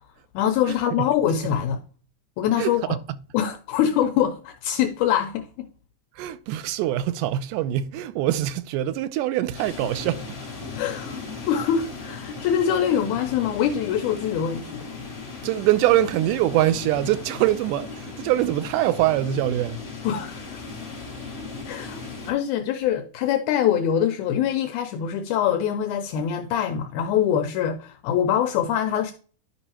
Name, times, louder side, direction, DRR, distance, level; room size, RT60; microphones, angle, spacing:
voice 1, 0.3-1.8 2.4-3.0 3.3-5.7 10.7-11.2 11.5-14.9 20.0-20.6 21.7-22.0 22.3-29.1, left 9 dB, 80° left, 2.0 m, -24 dB
voice 2, 2.6-3.2 6.2-10.2 15.4-19.8, right 13 dB, 90° right, 2.2 m, -23 dB
sound 1, 9.5-22.3, left 4 dB, 25° left, 1.9 m, -37 dB
11.0 x 5.4 x 2.9 m
omnidirectional pair, 3.6 m